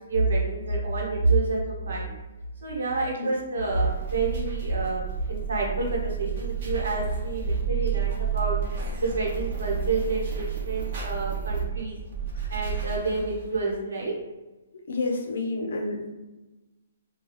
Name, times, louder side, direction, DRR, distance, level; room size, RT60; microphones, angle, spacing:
voice 1, 0.1-2.1 2.6-8.6 9.0-12.0 12.5-14.1, right 3 dB, 75° right, -2 dB, 0.9 m, -28 dB
sound 1, 3.7-13.6, right 7 dB, 40° right, 0.8 m, -31 dB
voice 2, 14.9-16.1, left 3 dB, 70° left, 2 dB, 0.6 m, -29 dB
2.3 x 2.2 x 3.1 m, 1.1 s
hypercardioid pair, 150°, 0 cm